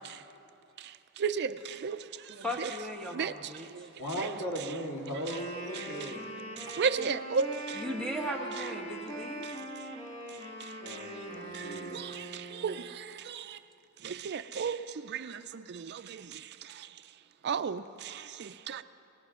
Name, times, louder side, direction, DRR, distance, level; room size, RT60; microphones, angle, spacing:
voice 1, 1.2-2.0 2.6-2.7 3.1-3.3 3.7-3.9 4.2-4.3 5.7-6.1 6.6-7.8 10.9-11.0 11.5-13.6 14.0-16.4 17.4-18.8, right 6 dB, 50° right, 0.4 m, -34 dB
voice 2, 2.4-3.9 7.7-9.5, equal, 5° left, 1.5 m, -37 dB
voice 3, 4.0-6.3 10.8-12.0, equal, 90° left, 2.7 m, -37 dB
Wind instrument woodwind instrument, 5.2-12.9, right 1 dB, 30° left, 2.3 m, -42 dB
28.0 x 19.0 x 2.5 m
head